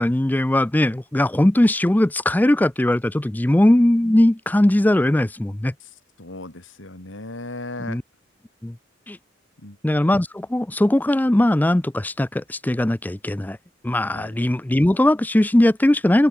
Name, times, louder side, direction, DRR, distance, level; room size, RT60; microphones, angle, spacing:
voice 1, 0.0-5.7 7.9-8.0 8.6-8.7 9.1-9.2 9.8-13.6 13.8-16.3, left 1 dB, 10° left, 0.4 m, -19 dB
voice 2, 5.8-8.0 9.6-9.8 14.1-14.3, left 2 dB, 85° left, 3.2 m, -37 dB
open air
head